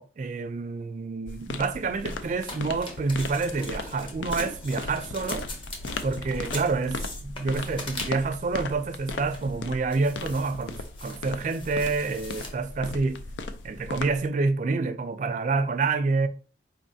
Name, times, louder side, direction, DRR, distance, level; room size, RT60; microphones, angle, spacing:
voice 1, 0.0-5.5 6.0-13.2 13.6-16.3, right 3 dB, 40° right, 0.3 m, -28 dB
sound 1, 1.3-14.3, left 3 dB, 85° left, 0.5 m, -37 dB
sound 2, 2.0-8.4 9.0-9.5 9.9-12.5, left 2 dB, 30° left, 0.7 m, -41 dB
4.4 x 3.1 x 2.6 m
head